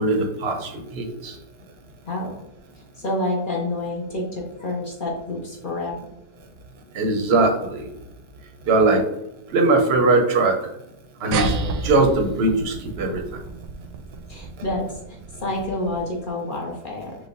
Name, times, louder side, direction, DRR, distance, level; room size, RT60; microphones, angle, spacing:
voice 1, 0.0-1.3 6.9-7.9 8.7-9.0 9.5-10.5 11.2-11.5 11.8-13.2, right 3 dB, 55° right, 3 dB, 0.7 m, -20 dB
voice 2, 2.1-2.4 3.0-6.0 14.3-17.2, left 1 dB, 50° left, -1 dB, 0.6 m, -28 dB
sound 1, 11.3-16.2, right 3 dB, 80° right, 1.2 m, -30 dB
4.9 x 2.2 x 3.8 m, 0.81 s
omnidirectional pair, 1.8 m